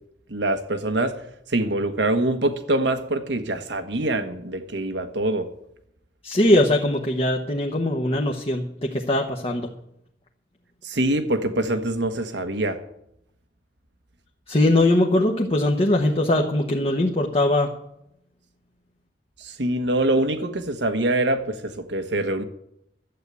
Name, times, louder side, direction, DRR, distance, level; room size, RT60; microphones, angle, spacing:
voice 1, 0.3-1.2 1.5-5.5 10.8-12.8 19.4-22.4, right 1 dB, 85° right, 8 dB, 1.4 m, -24 dB
voice 2, 6.2-9.7 14.5-17.7, left 1 dB, 35° left, 2 dB, 1.1 m, -21 dB
11.5 x 8.2 x 8.3 m, 0.79 s
head